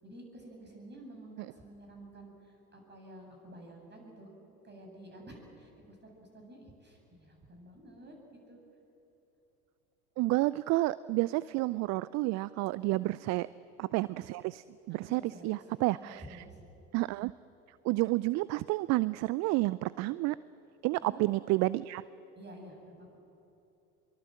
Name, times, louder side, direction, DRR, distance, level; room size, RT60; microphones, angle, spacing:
voice 1, 0.0-4.3 4.6-8.2 8.5-8.6 12.7-13.0 14.9-16.6 21.0-21.3 22.4-23.1, right 1 dB, 25° right, 2 dB, 7.6 m, -51 dB
voice 2, 10.2-13.5 13.8-16.4 16.9-17.3 17.8-20.4 20.8-22.0, right 20 dB, 40° right, 19 dB, 0.5 m, -30 dB
24.5 x 23.0 x 7.7 m, 2.9 s
figure-of-eight pair, 75°, 44 cm